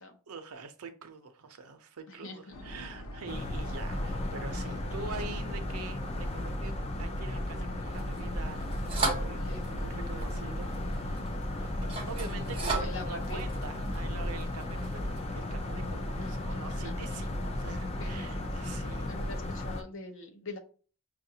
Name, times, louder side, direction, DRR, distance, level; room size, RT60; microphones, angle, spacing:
voice 1, 0.3-11.2 11.5-19.1, right 4 dB, 80° right, 0.6 m, -45 dB
voice 2, 2.1-2.6 9.2-11.1 11.8-13.5 16.2-16.9 18.0-18.6 19.1-20.6, left 2 dB, 55° left, 0.8 m, -45 dB
sound 1, 2.5-18.6, left 1 dB, 90° left, 0.7 m, -49 dB
sound 2, 3.3-19.8, left 1 dB, 25° left, 0.4 m, -35 dB
sound 3, 7.9-15.3, right 2 dB, 25° right, 1.0 m, -37 dB
5.5 x 2.5 x 2.8 m
head